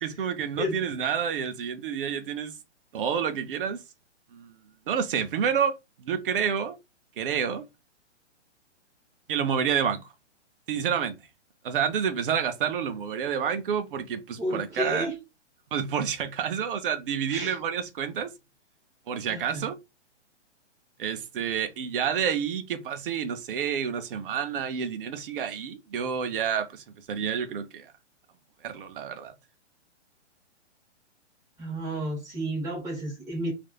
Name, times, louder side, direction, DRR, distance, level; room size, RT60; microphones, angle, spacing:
voice 1, 0.0-2.6 2.9-3.8 4.3-4.5 4.9-5.7 6.0-6.8 7.2-7.6 9.3-10.0 10.7-11.2 11.6-15.1 15.7-18.3 19.1-19.8 21.0-27.9 28.6-29.3, right 7 dB, 50° right, 0.6 m, -29 dB
voice 2, 14.4-15.2 17.3-17.6 19.3-19.7 31.6-33.5, equal, 10° right, 1.2 m, -32 dB
3.1 x 2.5 x 2.3 m
hypercardioid pair, 150°, 36 cm